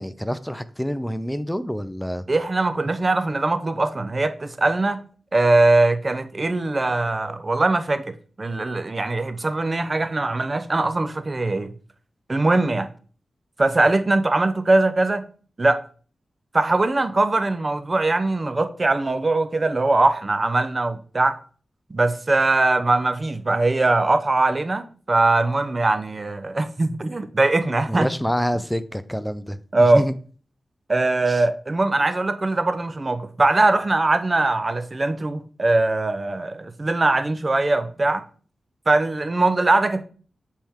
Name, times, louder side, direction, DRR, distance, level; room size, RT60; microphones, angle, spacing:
voice 1, 0.0-2.2 27.9-29.6 29.9-30.1 31.3-31.4, equal, 5° left, 0.5 m, -27 dB
voice 2, 2.3-5.0 5.3-11.7 12.3-12.9 13.6-15.3 15.6-15.8 16.5-21.4 21.9-28.1 29.7-30.0 30.9-38.2 38.9-40.0, right 2 dB, 40° right, 0.7 m, -21 dB
7.1 x 4.5 x 3.6 m
cardioid pair, 65°, 0 cm